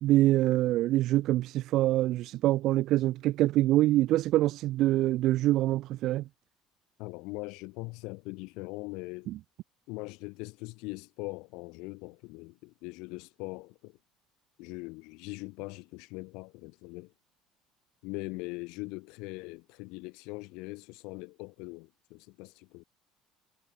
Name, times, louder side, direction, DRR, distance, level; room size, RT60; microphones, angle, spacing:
voice 1, 0.0-6.2 9.3-9.4, right 15 dB, 55° right, 0.5 m, -25 dB
voice 2, 7.0-9.3 9.9-14.0 14.6-17.1 18.0-22.8, left 26 dB, 75° left, 5.6 m, -41 dB
cardioid pair, 150°, 0 cm